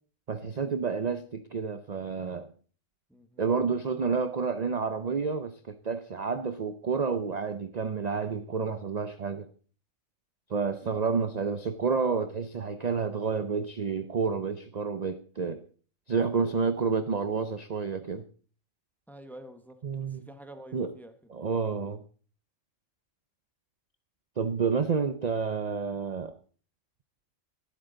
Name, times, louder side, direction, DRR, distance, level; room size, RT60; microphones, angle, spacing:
voice 1, 0.3-2.5 3.4-9.5 10.5-15.6 16.1-18.2 19.8-20.3 20.7-20.9 21.3-22.0 24.4-26.3, right 5 dB, 40° right, 0.6 m, -29 dB
voice 2, 3.1-3.5 19.1-21.3, right 1 dB, ahead, 0.9 m, -49 dB
23.5 x 8.0 x 3.9 m
omnidirectional pair, 1.4 m